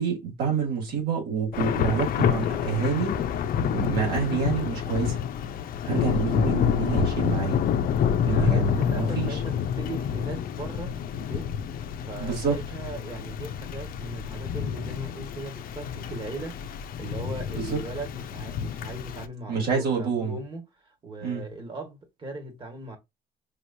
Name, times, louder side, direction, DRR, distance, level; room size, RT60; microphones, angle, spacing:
voice 1, 0.0-3.2 3.6-5.2 5.8-7.6 8.3-9.4 12.2-12.6 17.6-17.8 19.5-20.3 21.2-21.5, right 6 dB, 65° right, 2.8 m, -27 dB
Thunder / Rain, 1.5-19.2, left 8 dB, 60° left, 0.6 m, -28 dB
voice 2, 8.2-11.5 12.1-23.0, right 2 dB, 30° right, 1.7 m, -39 dB
5.3 x 3.0 x 2.7 m
cardioid pair, 110°, 17 cm